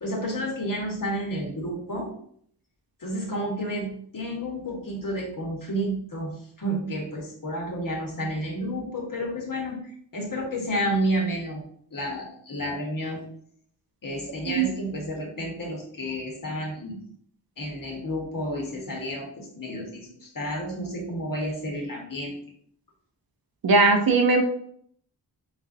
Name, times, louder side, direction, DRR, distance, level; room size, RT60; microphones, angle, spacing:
voice 1, 0.0-2.1 3.0-9.8 10.1-11.6 11.9-13.2 14.0-17.0 17.6-22.3, equal, 50° left, -1 dB, 1.3 m, -31 dB
voice 2, 23.6-24.4, right 3 dB, 55° right, 4 dB, 0.7 m, -19 dB
3.9 x 2.5 x 2.7 m, 0.63 s
cardioid pair, 45°, 44 cm